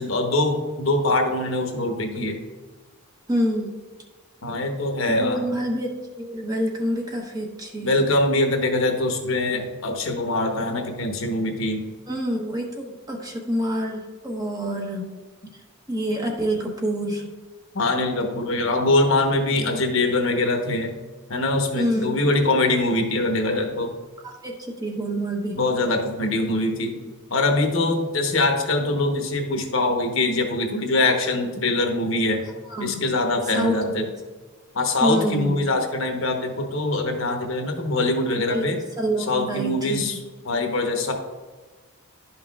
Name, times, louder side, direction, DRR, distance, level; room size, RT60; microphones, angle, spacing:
voice 1, 0.0-2.3 4.4-5.4 7.8-11.8 17.7-20.9 21.3-23.9 25.6-27.0 27.3-32.4 32.8-34.1 34.7-38.8 39.2-40.2 40.4-41.1, left 2 dB, 60° left, 3 dB, 1.1 m, -23 dB
voice 2, 3.3-3.8 5.1-8.0 12.1-15.1 15.5-15.6 15.9-17.3 19.6-19.9 21.7-22.2 24.2-25.6 32.7-33.0 33.5-34.1 35.0-35.5 38.5-40.2, equal, 15° right, 0 dB, 1.0 m, -27 dB
11.5 x 5.6 x 2.4 m, 1.3 s
head